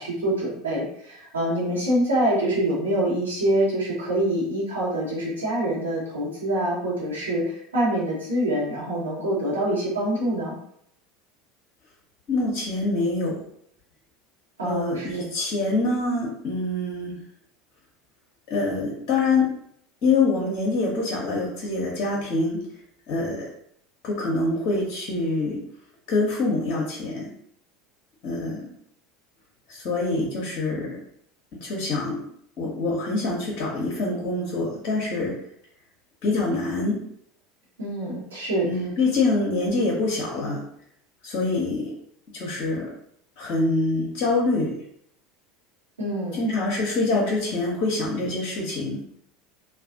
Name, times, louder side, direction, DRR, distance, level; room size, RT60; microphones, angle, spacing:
voice 1, 0.0-10.6 14.6-15.2 37.8-38.7 46.0-46.5, right 1 dB, 75° right, -7 dB, 1.1 m, -25 dB
voice 2, 12.3-13.4 14.6-17.2 18.5-19.5 20.0-22.6 23.1-23.5 24.0-25.6 26.1-27.3 28.2-28.7 29.7-31.0 31.6-32.2 32.6-35.4 36.2-37.0 38.6-40.6 41.2-41.9 42.3-42.9 43.4-44.8 46.3-49.0, left 3 dB, 45° left, -3 dB, 0.5 m, -25 dB
2.3 x 2.3 x 2.4 m, 0.69 s
figure-of-eight pair, 75°, 0 cm